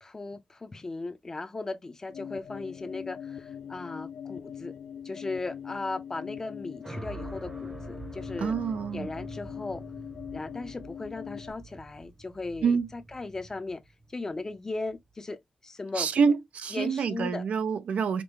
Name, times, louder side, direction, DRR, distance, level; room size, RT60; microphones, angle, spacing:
voice 1, 0.0-4.7 5.0-8.6 8.9-9.8 10.3-13.8 14.1-16.2 16.7-17.4, left 3 dB, 25° left, 0.6 m, -37 dB
sound 1, 2.1-11.5, left 8 dB, 65° left, 0.3 m, -42 dB
sound 2, 6.8-15.1, right 2 dB, 15° right, 0.8 m, -45 dB
voice 2, 8.4-9.1 12.6-12.9 16.0-18.2, right 6 dB, 85° right, 0.6 m, -27 dB
5.2 x 2.1 x 3.1 m
wide cardioid pair, 160°, 2 cm